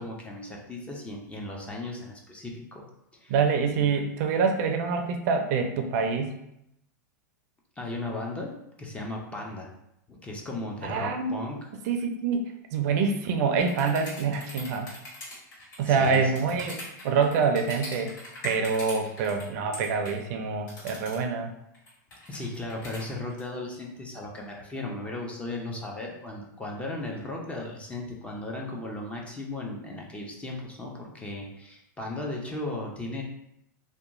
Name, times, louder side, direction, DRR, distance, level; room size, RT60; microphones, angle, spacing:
voice 1, 0.0-2.8 3.2-3.3 3.8-3.9 7.8-8.5 8.8-9.7 10.1-11.6 15.8-16.6 22.3-33.2, left 2 dB, 10° left, -1 dB, 0.4 m, -36 dB
voice 2, 3.3-6.4 10.8-11.3 11.9-12.4 12.7-14.9 15.8-18.1 18.4-21.5, right 5 dB, 60° right, 4 dB, 0.4 m, -26 dB
sound 1, 13.6-19.4 19.7-20.2 20.7-21.2 21.7-23.4, left 1 dB, 75° left, 1.4 m, -41 dB
2.8 x 2.2 x 2.5 m, 0.81 s
supercardioid pair, 130°, 10 cm